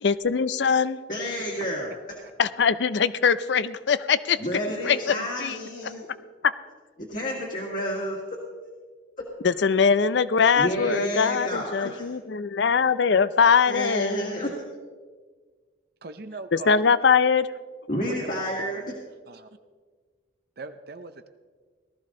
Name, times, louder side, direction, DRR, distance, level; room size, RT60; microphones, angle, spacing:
voice 1, 0.0-1.0 2.4-4.4 4.8-5.6 6.4-6.5 9.4-14.4 16.5-17.5, left 6 dB, 65° left, 16 dB, 0.5 m, -22 dB
voice 2, 1.1-1.9 4.4-6.1 7.1-8.2 9.2-9.3 10.6-12.1 13.7-14.6 17.9-18.8, equal, 45° left, -3 dB, 1.9 m, -30 dB
voice 3, 16.0-16.7 18.1-18.9 19.3-19.5 20.6-21.3, right 3 dB, 55° right, 9 dB, 0.6 m, -41 dB
18.0 x 13.5 x 3.8 m, 1.5 s
head